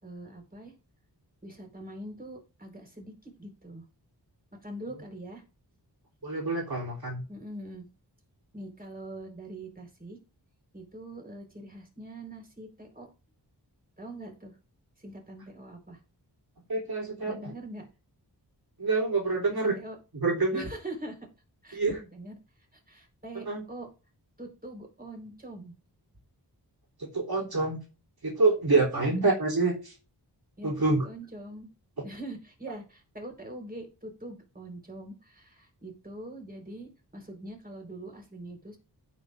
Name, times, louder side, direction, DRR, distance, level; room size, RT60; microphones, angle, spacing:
voice 1, 0.0-0.8 1.4-3.8 4.6-5.4 7.3-7.9 8.5-10.2 10.7-13.1 14.0-14.6 15.0-16.0 17.2-17.9 19.5-20.0 20.5-21.3 21.6-22.4 22.7-23.9 24.4-25.7 28.7-29.2 30.6-31.7 32.0-38.8, right 1 dB, 20° right, 2 dB, 4.3 m, -43 dB
voice 2, 6.2-7.2 16.7-17.5 18.8-19.7 20.2-20.6 21.7-21.9 23.5-23.6 27.1-27.8 28.2-29.9 30.6-31.0, right 3 dB, 60° right, -3 dB, 3.3 m, -26 dB
16.0 x 5.5 x 2.6 m, 0.32 s
wide cardioid pair, 75°, 41 cm